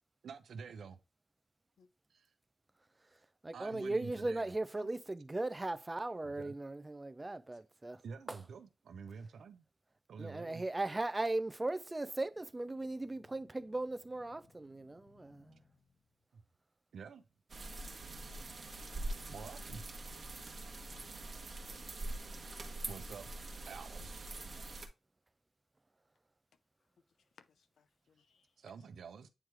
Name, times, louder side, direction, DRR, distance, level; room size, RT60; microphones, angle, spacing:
voice 1, 0.2-1.0 2.1-2.3 3.5-4.5 6.2-6.6 8.0-9.6 10.1-10.6 16.9-17.2 19.3-19.8 22.9-23.3 23.7-24.3 28.6-29.3, right 5 dB, 85° right, 0.7 m, -48 dB
voice 2, 3.4-8.0 8.3-8.4 10.2-15.6, right 2 dB, 15° right, 0.4 m, -38 dB
sound 1, 12.2-16.2 17.5-21.5, left 4 dB, 60° left, 1.3 m, -67 dB
sound 2, 17.5-24.9, right 2 dB, 40° right, 1.1 m, -44 dB
voice 3, 20.6-21.1 21.4-23.0 28.1-28.5, left 6 dB, 90° left, 0.5 m, -64 dB
8.8 x 3.1 x 3.4 m
wide cardioid pair, 145°, 0 cm